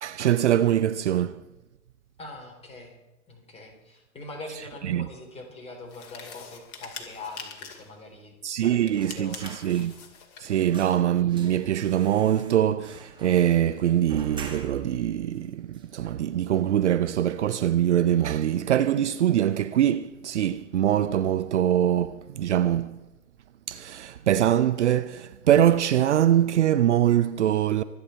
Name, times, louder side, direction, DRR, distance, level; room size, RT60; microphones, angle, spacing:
voice 1, 0.0-1.4 4.8-5.1 8.4-9.9 10.4-23.0 23.7-27.8, right 11 dB, 55° right, 0.7 m, -23 dB
voice 2, 2.2-3.0 3.3-9.6 10.6-10.9, left 2 dB, 15° left, 3.7 m, -43 dB
sound 1, 5.9-7.9 8.8-10.6, left 6 dB, 40° left, 2.5 m, -43 dB
sound 2, 8.9-10.2 10.4-15.0 15.3-15.4 15.7-16.6 16.9-17.1 17.4-18.1 18.4-18.6, right 5 dB, 10° right, 1.9 m, -46 dB
25.5 x 9.6 x 4.4 m
figure-of-eight pair, 115°, 42 cm